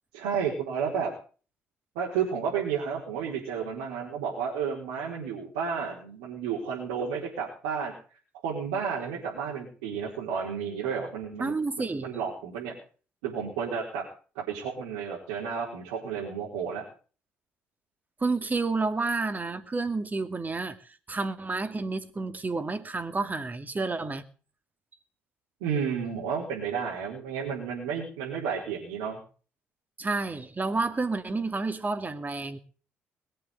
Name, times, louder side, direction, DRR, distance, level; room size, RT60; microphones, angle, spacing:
voice 1, 0.1-1.1 1.9-7.9 8.4-11.5 12.0-12.7 13.2-14.0 14.5-16.8 25.6-29.2, right 6 dB, 80° right, 4.2 m, -31 dB
voice 2, 11.4-12.1 18.2-24.2 30.0-32.6, right 3 dB, 30° right, 2.5 m, -30 dB
21.5 x 7.8 x 7.8 m
hypercardioid pair, 50°, 6 cm